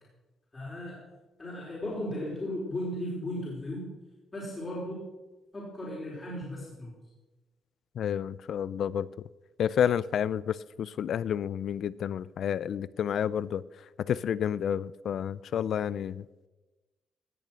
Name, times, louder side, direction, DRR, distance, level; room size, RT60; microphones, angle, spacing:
voice 1, 0.5-1.0 1.4-3.9 4.3-5.0 5.5-6.9, left 1 dB, 30° left, -5 dB, 4.4 m, -36 dB
voice 2, 8.0-9.1 9.6-13.6 14.0-16.3, left 9 dB, 65° left, 20 dB, 0.4 m, -30 dB
17.0 x 6.7 x 6.2 m, 1.2 s
cardioid pair, 90°, 0 cm